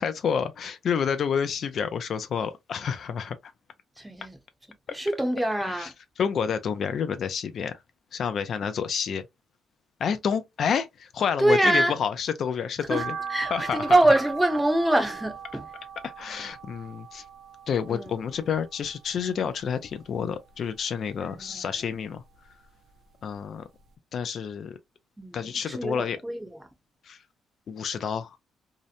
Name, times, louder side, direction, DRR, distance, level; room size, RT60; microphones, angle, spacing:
voice 1, 0.0-3.5 4.9-5.0 5.6-5.9 6.2-7.8 8.1-9.3 10.0-13.2 13.5-14.0 16.0-17.3 17.7-22.2 23.2-23.6 24.1-24.8 25.3-26.2 27.0-27.2 27.7-28.4, left 7 dB, 60° left, 0.3 m, -29 dB
voice 2, 4.0-4.4 4.9-5.9 11.4-11.9 12.9-13.0 13.3-15.7 17.9-18.1 21.2-21.6 25.2-26.6, right 1 dB, 5° right, 0.8 m, -24 dB
sound 1, 12.9-19.2 19.6-20.7 21.1-22.5 22.9-23.0 23.5-23.6 23.8-23.9, right 6 dB, 60° right, 0.5 m, -39 dB
2.7 x 2.0 x 2.5 m
cardioid pair, 90°, 0 cm